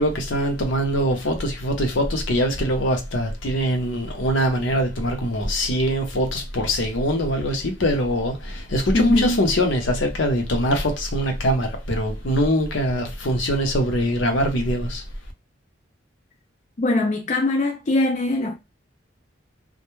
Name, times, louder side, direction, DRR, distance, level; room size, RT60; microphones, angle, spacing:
voice 1, 0.0-15.0, equal, 75° left, 0.7 m, -23 dB
voice 2, 8.9-9.4 16.8-18.5, left 2 dB, 40° left, 0.4 m, -21 dB
2.2 x 2.1 x 3.0 m
head